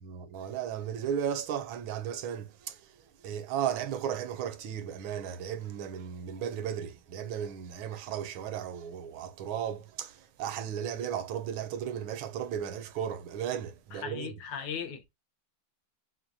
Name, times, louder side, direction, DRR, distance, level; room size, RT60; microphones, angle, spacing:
voice 1, 0.0-14.3, right 9 dB, 75° right, 1.4 m, -35 dB
voice 2, 13.9-15.1, left 7 dB, 65° left, 1.4 m, -37 dB
6.0 x 2.2 x 2.6 m
omnidirectional pair, 2.3 m